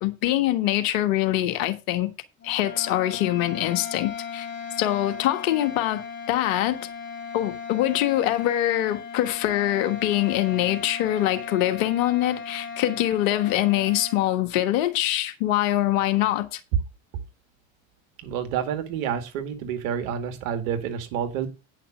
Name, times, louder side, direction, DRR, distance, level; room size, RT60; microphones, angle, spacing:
voice 1, 0.0-2.1 2.4-4.5 4.8-6.9 7.3-16.6, left 14 dB, 75° left, 1.5 m, -24 dB
sound 1, 2.4-14.2, left 5 dB, 30° left, 3.6 m, -37 dB
voice 2, 18.2-21.5, right 8 dB, 75° right, 2.1 m, -29 dB
9.4 x 5.9 x 6.3 m
hypercardioid pair, 70°, 41 cm